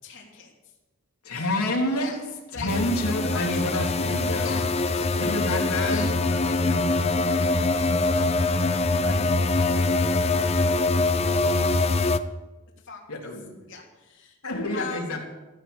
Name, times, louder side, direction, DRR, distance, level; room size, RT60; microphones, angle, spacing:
voice 1, 0.0-0.7 1.9-2.2 2.5-2.7 3.1-3.9 4.4-6.6 12.8-13.3 13.7-14.4 14.7-15.2, left 5 dB, 55° left, -2 dB, 3.1 m, -43 dB
voice 2, 1.2-2.1 2.5-4.6 5.2-6.1 6.6-6.9 9.0-9.3 13.1-13.7 14.4-15.2, left 1 dB, 85° left, -1 dB, 3.5 m, -28 dB
sound 1, 2.7-12.2, left 2 dB, 30° left, 0.6 m, -23 dB
15.5 x 13.0 x 7.0 m, 1.1 s
head